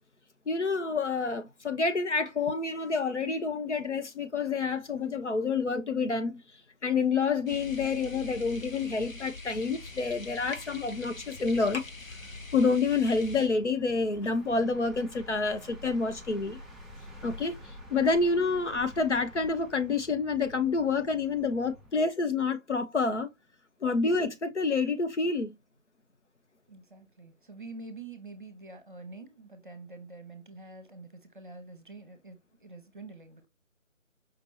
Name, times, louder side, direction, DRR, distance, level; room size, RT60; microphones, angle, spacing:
voice 1, 0.5-6.4 6.8-11.8 12.5-16.6 17.2-17.6 17.9-23.3 23.8-25.5, left 4 dB, 60° left, 0.9 m, -28 dB
sound 1, 7.5-13.5, left 3 dB, 85° left, 1.1 m, -44 dB
sound 2, 9.4-22.1, equal, ahead, 0.4 m, -50 dB
voice 2, 26.7-33.5, right 3 dB, 40° right, 0.8 m, -46 dB
5.1 x 2.8 x 2.9 m
figure-of-eight pair, 160°, 39 cm